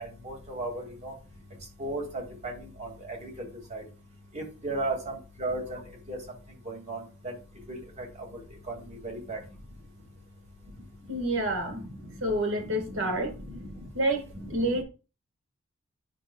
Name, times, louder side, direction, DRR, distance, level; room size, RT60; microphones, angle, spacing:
voice 1, 0.3-0.7 1.0-1.1 1.8-2.0 2.4-2.5 2.8-2.9 3.7-3.8 4.3-5.0 5.4-5.6 6.1-6.2 6.7-7.0 7.7-7.8 9.0-9.4 12.6-12.7, right 2 dB, 30° right, 2.1 m, -33 dB
voice 2, 11.1-11.8 12.2-13.3 13.9-14.8, right 1 dB, 65° right, 1.6 m, -28 dB
9.8 x 5.6 x 2.3 m
head